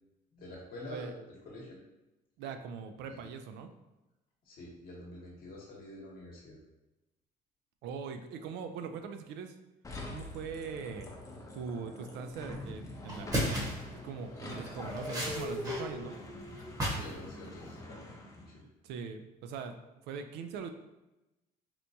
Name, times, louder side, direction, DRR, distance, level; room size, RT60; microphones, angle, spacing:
voice 1, 0.3-1.8 3.1-3.3 4.4-6.6 16.9-18.1 18.4-18.7, left 1 dB, 60° left, -3 dB, 1.0 m, -47 dB
voice 2, 2.4-3.7 7.8-9.5 10.1-11.1 11.5-13.6 14.0-16.2 18.8-19.8 20.0-20.7, right 6 dB, 85° right, 7 dB, 0.4 m, -41 dB
sound 1, 9.8-18.6, left 2 dB, 20° left, 0.6 m, -43 dB
sound 2, 12.5-12.7 13.1-13.9 14.4-15.8 16.1-17.2 17.4-17.8, equal, 20° right, 1.0 m, -35 dB
4.3 x 2.2 x 2.6 m, 0.98 s
cardioid pair, 110°, 17 cm